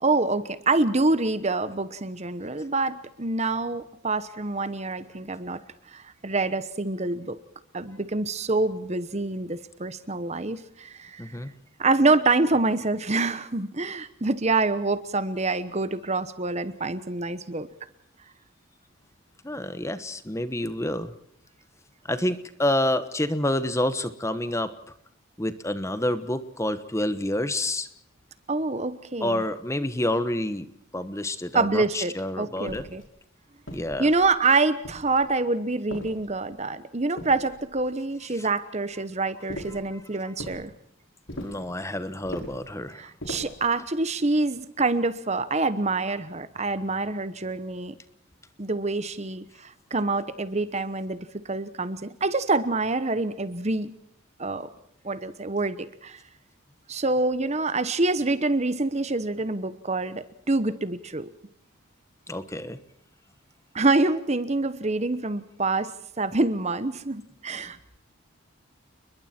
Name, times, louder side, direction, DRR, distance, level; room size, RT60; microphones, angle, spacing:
voice 1, 0.0-5.6 5.9-7.4 7.7-11.3 11.8-17.7 28.5-29.4 31.5-33.0 34.0-40.7 42.9-48.0 48.6-51.2 51.5-53.9 54.4-54.7 55.0-56.2 56.9-61.3 63.7-65.9 66.2-67.8, right 3 dB, 30° right, 14 dB, 1.0 m, -26 dB
voice 2, 11.2-11.5 19.4-21.1 22.1-24.7 25.4-27.9 29.2-30.7 30.9-32.9 33.7-34.1 38.4-38.5 41.3-43.0 62.3-62.8, left 1 dB, 15° left, 12 dB, 1.2 m, -28 dB
sound 1, 32.7-33.1 33.7-34.3 34.8-35.4 35.9-36.6 37.2-37.9 39.5-39.9 40.4-40.7 41.3-41.7 42.2-42.7 43.2-43.6, equal, 65° left, 5.2 m, -39 dB
30.0 x 22.0 x 4.5 m, 0.71 s
head